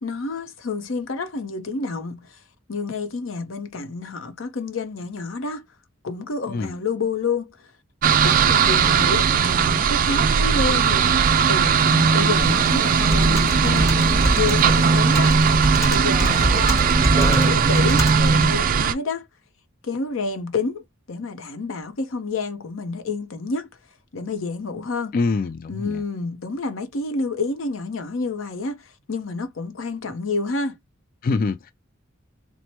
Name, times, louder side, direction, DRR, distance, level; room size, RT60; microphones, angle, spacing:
voice 1, 0.0-2.2 2.7-5.7 6.0-7.5 8.2-11.2 11.5-15.4 15.9-19.3 19.8-23.7 24.1-25.2 25.7-30.8, left 3 dB, 85° left, 0.7 m, -29 dB
voice 2, 6.5-6.8 25.1-26.0 31.2-31.7, left 4 dB, 45° left, 0.3 m, -25 dB
sound 1, 8.0-18.9, right 6 dB, 45° right, 0.4 m, -18 dB
Computer keyboard, 12.4-18.6, equal, 15° left, 1.0 m, -25 dB
4.3 x 2.1 x 2.9 m
head